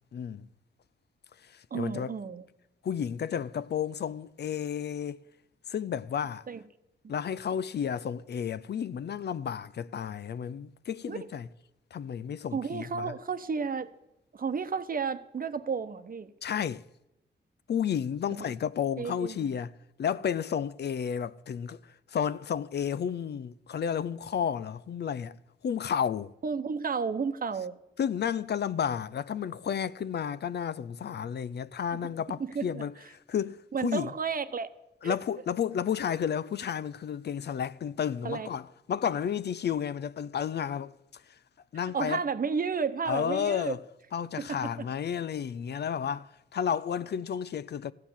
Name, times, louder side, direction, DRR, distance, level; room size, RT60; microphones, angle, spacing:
voice 1, 0.1-0.5 1.4-2.1 2.8-5.2 5.7-6.4 7.1-11.5 11.9-13.1 16.4-16.8 17.7-19.7 20.0-21.8 22.1-25.4 25.6-26.3 28.0-32.9 33.3-34.1 35.0-40.9 41.7-42.2 43.1-43.8 44.1-47.9, left 8 dB, 60° left, 0.5 m, -32 dB
voice 2, 1.7-2.4 6.5-6.6 11.1-11.2 12.5-13.9 14.3-16.3 18.3-18.5 19.0-19.5 26.4-27.8 32.4-32.8 33.7-34.7 35.0-35.1 38.2-38.5 41.9-43.8 44.4-44.9, right 5 dB, 45° right, 0.9 m, -32 dB
15.0 x 9.4 x 7.2 m
cardioid pair, 65°, 20 cm